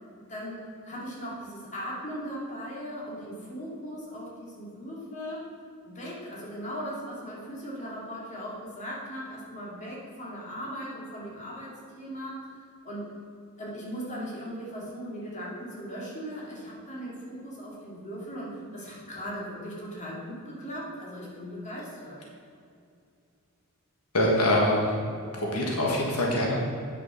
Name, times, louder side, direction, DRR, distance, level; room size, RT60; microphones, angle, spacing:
voice 1, 0.1-5.5 5.8-12.4 12.8-13.1 13.6-22.2, equal, 35° left, -5 dB, 2.6 m, -38 dB
voice 2, 24.1-25.0 25.3-26.6, left 1 dB, 85° left, -2 dB, 1.6 m, -24 dB
9.0 x 6.2 x 5.8 m, 2.4 s
head